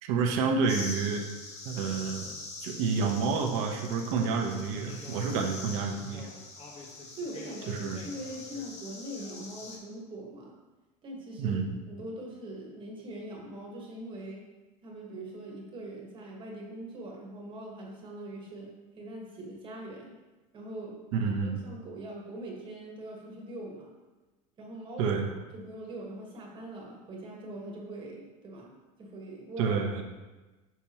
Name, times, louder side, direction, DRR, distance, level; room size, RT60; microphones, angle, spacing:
voice 1, 0.0-1.2 1.6-2.3 2.6-6.3 7.7-8.0 11.4-11.7 21.1-21.6 25.0-25.2 29.6-30.0, right 5 dB, 70° right, 2 dB, 1.0 m, -29 dB
sound 1, 0.7-9.8, left 3 dB, 40° left, 1.2 m, -43 dB
voice 2, 7.2-10.5 11.0-11.6 11.9-14.4 14.8-20.1 20.5-23.9 24.6-25.1 25.5-28.7 29.0-30.0, right 1 dB, 30° right, -1 dB, 1.5 m, -42 dB
7.1 x 6.0 x 2.9 m, 1.2 s
supercardioid pair, 135°, 18 cm